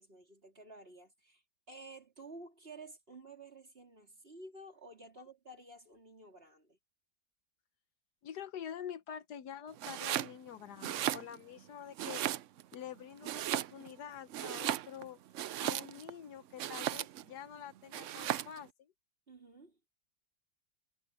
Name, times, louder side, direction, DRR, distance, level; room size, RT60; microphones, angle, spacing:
voice 1, 0.0-6.8 19.3-19.8, right 2 dB, 35° right, 3.6 m, -52 dB
voice 2, 8.2-12.2 12.7-15.2 15.6-18.9, left 9 dB, 70° left, 1.4 m, -46 dB
Domestic sounds home sounds, 9.8-10.3 10.7-11.6 12.0-12.8 13.2-14.0 14.3-16.1 16.6-17.3 17.9-18.6, right 12 dB, 75° right, 0.7 m, -36 dB
omnidirectional pair, 1.8 m